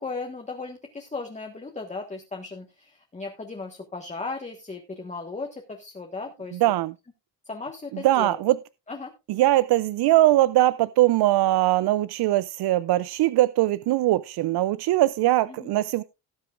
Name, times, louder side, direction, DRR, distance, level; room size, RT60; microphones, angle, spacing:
voice 1, 0.0-6.6 7.5-8.4 8.9-9.1 15.5-15.7, left 3 dB, 15° left, 1.3 m, -36 dB
voice 2, 6.5-6.9 7.9-8.6 9.3-16.0, right 15 dB, 70° right, 0.5 m, -21 dB
18.0 x 7.7 x 2.4 m
cardioid pair, 125°, 41 cm